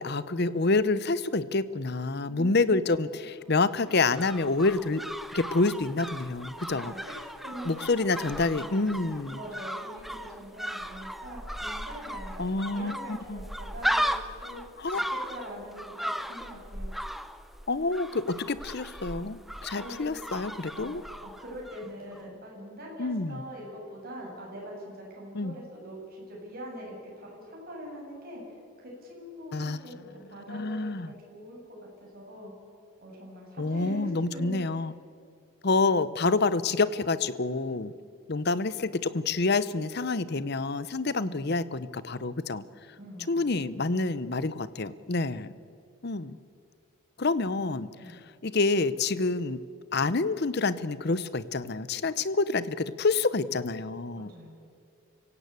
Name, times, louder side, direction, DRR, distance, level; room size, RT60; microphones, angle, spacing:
voice 1, 0.0-5.0 5.3-6.9 7.6-9.4 12.4-13.4 14.8-15.1 17.7-21.0 23.0-23.4 25.3-25.6 29.5-29.8 30.3-31.1 33.6-34.9 35.6-37.9 38.3-42.6 43.3-45.5 46.0-46.4 47.2-47.9 48.4-49.6 49.9-54.3, left 3 dB, 50° left, 16 dB, 0.7 m, -28 dB
voice 2, 2.2-3.3 6.7-7.1 7.4-8.9 9.2-14.6 14.9-16.9 19.8-20.2 20.7-20.9 21.2-30.9 31.3-32.5 33.0-34.8 41.2-41.4 43.0-43.6 47.9-48.2 54.1-54.6, equal, 45° right, -2 dB, 7.4 m, -43 dB
sound 1, 3.7-21.9 22.1-22.2, equal, ahead, 0.6 m, -37 dB
26.0 x 17.0 x 8.3 m, 2.4 s
head